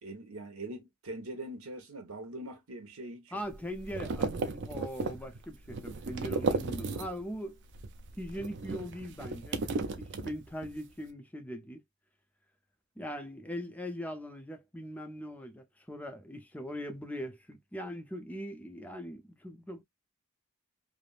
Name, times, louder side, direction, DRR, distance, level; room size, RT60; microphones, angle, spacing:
voice 1, 0.0-3.4, right 1 dB, 75° right, 1.1 m, -42 dB
voice 2, 3.3-7.6 8.2-11.8 13.0-19.8, equal, 5° left, 0.5 m, -41 dB
sound 1, 3.4-7.4 7.7-10.8, right 3 dB, 55° right, 0.5 m, -35 dB
3.4 x 2.0 x 2.4 m
head